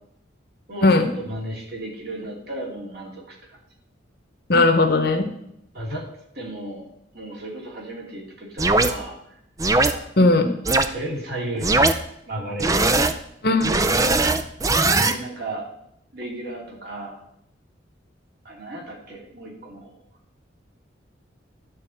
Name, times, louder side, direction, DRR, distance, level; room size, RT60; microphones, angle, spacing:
voice 1, 0.7-3.6 5.7-6.0 6.3-6.9 7.1-9.2 9.8-10.1 10.9-11.8 12.3-12.8 15.1-15.7 16.1-17.2 18.4-19.9, right 2 dB, 50° right, -2 dB, 3.0 m, -35 dB
voice 2, 4.5-5.3 10.2-10.5 13.4-13.7, left 2 dB, 55° left, 7 dB, 1.0 m, -17 dB
sound 1, 8.6-8.9 9.6-9.9 10.7-10.9 11.6-11.9 12.6-13.1 13.6-15.1, right 2 dB, 15° right, 0.4 m, -19 dB
12.0 x 4.3 x 7.8 m, 0.76 s
head